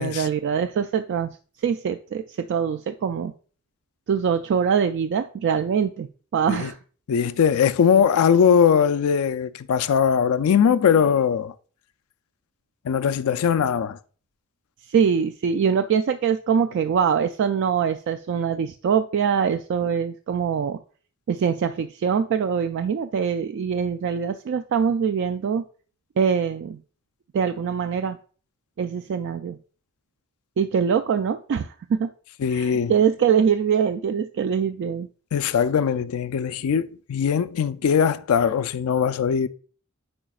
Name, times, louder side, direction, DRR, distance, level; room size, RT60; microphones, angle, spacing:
voice 1, 0.0-1.3 1.6-3.3 4.1-6.1 6.3-6.8 14.9-20.8 21.3-25.6 26.2-26.8 27.3-28.2 28.8-29.6 30.6-32.1 32.5-35.1, right 7 dB, 60° right, 0.3 m, -23 dB
voice 2, 7.1-11.5 12.8-14.0 32.4-32.9 35.3-39.5, left 7 dB, 85° left, 0.4 m, -20 dB
8.7 x 5.0 x 2.3 m
head